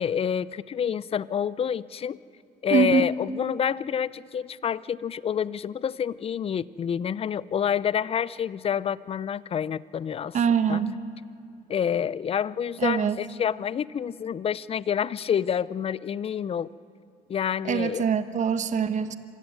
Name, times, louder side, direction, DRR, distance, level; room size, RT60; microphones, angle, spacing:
voice 1, 0.0-2.2 2.6-10.4 10.7-10.8 11.7-16.7 17.3-18.1, left 8 dB, 35° left, 20 dB, 0.5 m, -28 dB
voice 2, 2.7-3.1 10.3-11.0 12.8-13.2 17.7-19.2, right 7 dB, 45° right, 12 dB, 1.1 m, -23 dB
26.0 x 15.5 x 9.6 m, 2.5 s
cardioid pair, 110°, 17 cm